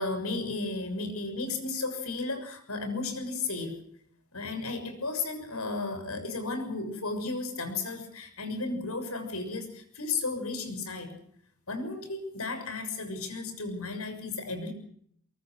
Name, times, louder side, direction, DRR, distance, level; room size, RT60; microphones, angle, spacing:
voice 1, 0.0-3.7 4.3-11.2 11.7-14.7, left 3 dB, 85° left, 7 dB, 6.7 m, -34 dB
23.5 x 23.0 x 6.3 m, 0.66 s
head